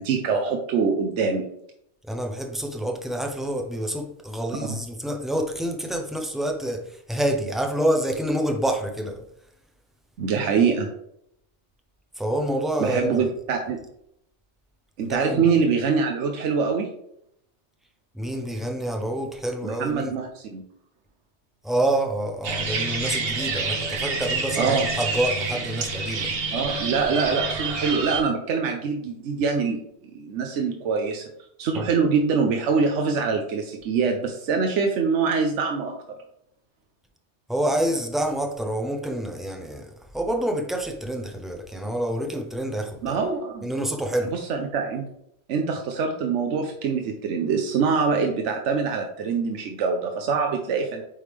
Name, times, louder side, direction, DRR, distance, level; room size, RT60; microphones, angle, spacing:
voice 1, 0.0-1.5 10.2-10.9 12.8-13.8 15.0-16.9 19.6-20.6 24.6-24.9 26.5-29.8 30.1-31.3 31.6-36.2 43.0-43.7 44.2-45.1 45.5-51.0, right 5 dB, 80° right, 3 dB, 1.0 m, -24 dB
voice 2, 2.1-9.2 12.2-13.3 15.1-15.5 18.1-20.2 21.6-26.3 31.7-31.9 37.5-43.2 43.6-44.3, right 1 dB, ahead, 3 dB, 0.4 m, -27 dB
sound 1, 22.4-28.2, right 4 dB, 55° right, 1.1 m, -28 dB
9.0 x 3.3 x 3.5 m, 0.74 s
omnidirectional pair, 1.2 m